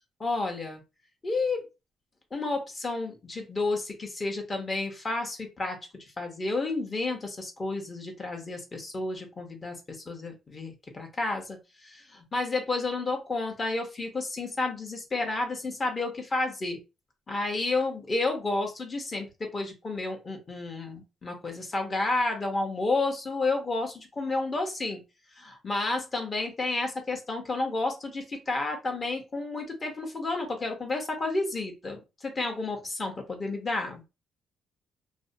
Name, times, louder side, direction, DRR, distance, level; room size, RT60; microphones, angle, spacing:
voice 1, 0.2-0.8 1.2-1.7 2.3-5.8 6.2-9.8 10.1-16.8 17.3-19.3 19.5-25.0 25.4-34.0, left 2 dB, 35° left, 3 dB, 0.9 m, -31 dB
2.6 x 2.1 x 2.6 m, 0.27 s
cardioid pair, 90°, 0 cm